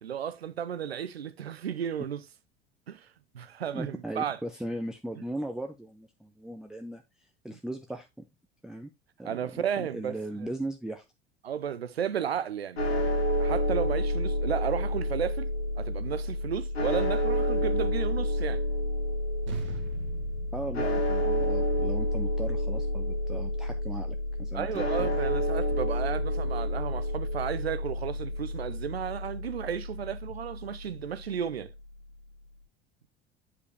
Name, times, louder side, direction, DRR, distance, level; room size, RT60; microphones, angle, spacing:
voice 1, 0.0-2.2 2.9-3.1 3.3-4.4 7.5-7.6 9.2-10.5 11.4-15.5 15.8-18.6 19.7-19.8 24.5-31.7, right 8 dB, 85° right, 0.6 m, -33 dB
voice 2, 3.7-8.1 8.6-8.9 9.2-11.0 20.5-25.1, right 1 dB, ahead, 0.6 m, -38 dB
sound 1, 12.8-31.0, equal, 80° left, 2.1 m, -29 dB
sound 2, 19.5-24.2, right 8 dB, 40° right, 1.5 m, -46 dB
8.4 x 4.7 x 3.2 m
figure-of-eight pair, 70°, 30 cm